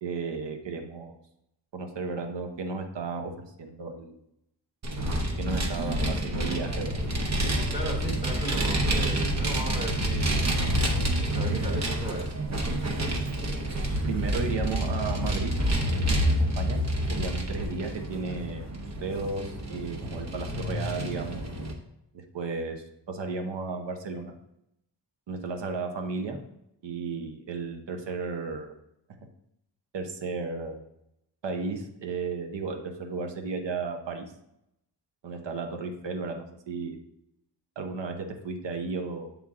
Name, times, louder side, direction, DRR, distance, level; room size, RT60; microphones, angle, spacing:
voice 1, 0.0-1.1 1.7-4.2 5.4-7.0 14.0-15.5 15.8-16.8 17.1-21.4 22.1-22.8 23.1-24.3 25.3-26.4 26.8-28.7 29.9-30.8 31.4-34.3 35.2-37.0 37.8-39.4, right 4 dB, 85° right, 4 dB, 0.8 m, -34 dB
Vehicle, 4.8-21.7, right 1 dB, 40° right, 0.8 m, -28 dB
voice 2, 7.7-10.4 11.3-12.3, right 2 dB, 20° right, -2 dB, 1.2 m, -35 dB
7.4 x 3.6 x 3.6 m, 0.80 s
wide cardioid pair, 160°, 42 cm